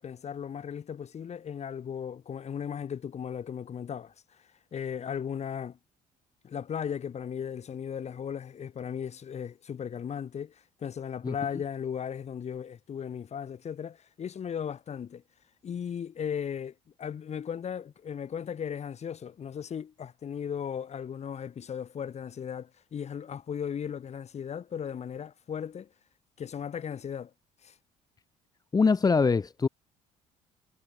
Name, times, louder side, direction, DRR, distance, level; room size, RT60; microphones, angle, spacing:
voice 1, 0.0-4.1 4.7-5.8 6.4-15.2 15.6-25.9 26.4-27.3 27.6-27.8, left 8 dB, 45° left, 1.9 m, -36 dB
voice 2, 28.7-29.7, left 4 dB, 25° left, 0.8 m, -23 dB
supercardioid pair, 70°, 16 cm